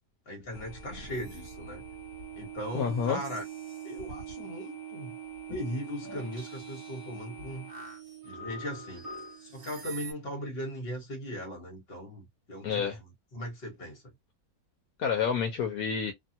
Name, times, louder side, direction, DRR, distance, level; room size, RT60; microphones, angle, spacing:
voice 1, 0.3-1.8 2.3-3.4 3.8-5.1 5.5-7.7 8.2-9.1 9.4-14.0, equal, 40° left, 1.5 m, -38 dB
sound 1, 0.5-10.1, right 5 dB, 40° right, 1.4 m, -43 dB
voice 2, 2.7-3.2 12.6-13.0 15.0-16.1, left 7 dB, 75° left, 1.1 m, -29 dB
2.8 x 2.3 x 2.7 m
omnidirectional pair, 1.6 m